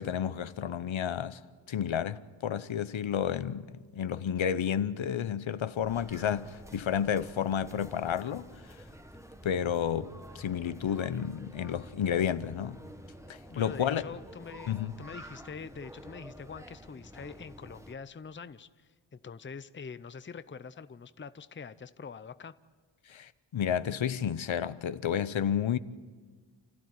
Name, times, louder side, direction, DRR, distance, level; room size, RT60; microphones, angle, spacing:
voice 1, 0.0-1.4 1.7-8.5 9.4-12.8 13.3-14.0 14.7-15.0 23.1-25.8, left 8 dB, 80° left, 0.9 m, -31 dB
sound 1, 5.8-17.9, equal, 5° right, 1.2 m, -49 dB
voice 2, 13.5-22.5, left 5 dB, 25° left, 0.6 m, -45 dB
29.5 x 15.0 x 9.5 m
wide cardioid pair, 130°, 46 cm